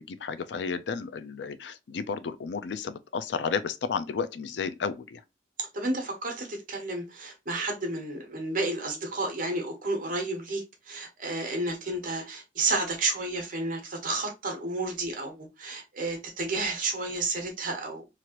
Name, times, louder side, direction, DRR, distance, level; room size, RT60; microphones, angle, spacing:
voice 1, 0.0-5.2, left 5 dB, 70° left, 0.4 m, -32 dB
voice 2, 5.7-18.1, right 2 dB, 50° right, 1.0 m, -31 dB
3.1 x 2.5 x 2.8 m
head